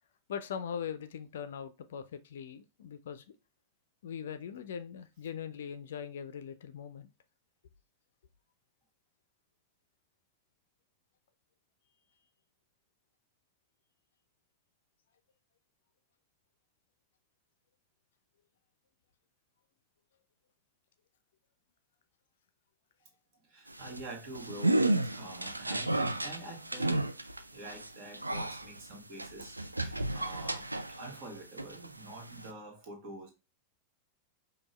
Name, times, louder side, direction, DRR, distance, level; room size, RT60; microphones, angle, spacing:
voice 1, 0.3-3.2 4.0-7.1, left 7 dB, 60° left, 0.4 m, -41 dB
voice 2, 23.3-27.1 27.5-33.3, right 2 dB, 40° right, 1.4 m, -47 dB
sound 1, 23.7-31.3 31.6-32.5, right 1 dB, 85° right, 0.3 m, -33 dB
5.2 x 2.3 x 3.1 m
figure-of-eight pair, 90°, 0 cm